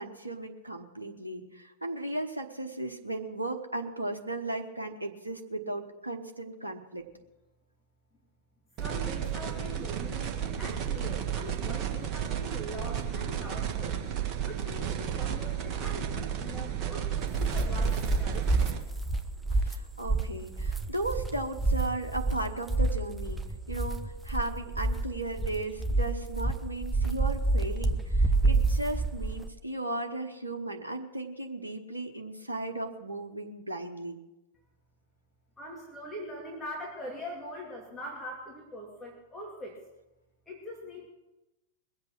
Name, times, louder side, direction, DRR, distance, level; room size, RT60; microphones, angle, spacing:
voice 1, 0.0-7.1 19.5-23.4 23.7-34.2, right 2 dB, 85° right, 3 dB, 1.1 m, -36 dB
voice 2, 8.8-14.0 14.4-18.8 35.6-39.8 40.5-41.1, equal, 10° left, -3 dB, 2.6 m, -42 dB
sound 1, 8.8-18.8, right 9 dB, 35° right, 1.7 m, -33 dB
sound 2, 17.1-29.5, right 3 dB, 5° right, 1.0 m, -28 dB
21.5 x 8.1 x 5.9 m, 1.0 s
figure-of-eight pair, 95°, 0 cm